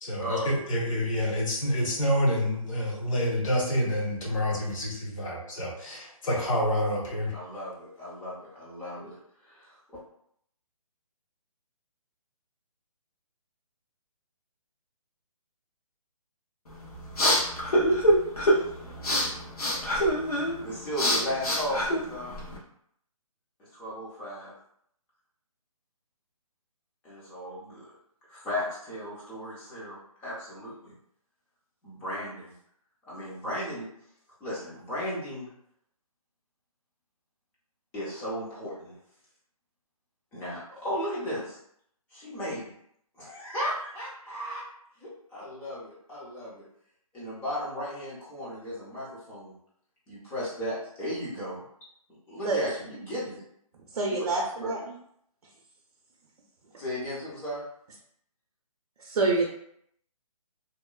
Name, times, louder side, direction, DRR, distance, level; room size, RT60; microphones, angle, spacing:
voice 1, 0.0-7.3, equal, 60° left, -3 dB, 1.1 m, -28 dB
voice 2, 7.3-9.2 9.4-9.8 19.7-19.8 20.6-22.3 23.7-24.5 27.0-27.9 28.3-30.9 31.8-32.5 33.1-33.9 34.4-35.5 37.9-39.0 40.3-41.6 42.1-42.7 43.2-44.6 45.0-46.6 47.1-49.5 50.1-51.6 52.3-53.4 54.1-54.7 56.8-57.6, equal, 5° left, -8 dB, 0.4 m, -35 dB
sound 1, 16.7-22.6, equal, 80° left, 1.0 m, -26 dB
voice 3, 53.9-54.8 59.0-59.5, right 3 dB, 70° right, -1 dB, 0.5 m, -26 dB
2.9 x 2.1 x 2.3 m, 0.70 s
hypercardioid pair, 155°, 19 cm